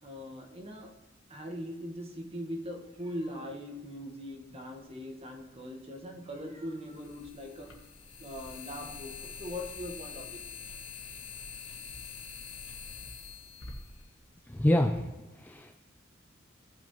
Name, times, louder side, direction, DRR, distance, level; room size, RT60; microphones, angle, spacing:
voice 1, 0.0-0.9 1.3-7.8 8.2-10.4, equal, 30° right, 3 dB, 1.4 m, -41 dB
sound 1, 5.4-5.5 6.8-14.8, left 5 dB, 70° left, 1.7 m, -45 dB
voice 2, 14.5-15.7, left 1 dB, 10° left, 3 dB, 0.5 m, -27 dB
16.5 x 5.9 x 3.0 m, 1.1 s
head